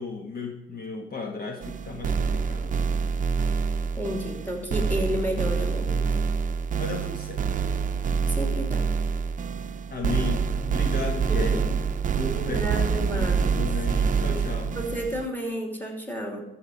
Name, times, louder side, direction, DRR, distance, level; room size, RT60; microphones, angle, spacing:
voice 1, 0.0-2.8 6.8-7.5 9.9-11.5 12.1-12.7 13.1-14.8, left 4 dB, 50° left, 3 dB, 1.5 m, -34 dB
sound 1, 1.6-15.3, right 5 dB, 40° right, 0.6 m, -26 dB
voice 2, 4.0-6.2 8.3-8.9 11.3-11.6 12.5-13.7 14.7-16.4, equal, 10° left, 2 dB, 2.9 m, -31 dB
13.5 x 5.1 x 8.4 m, 0.92 s
cardioid pair, 90°, 20 cm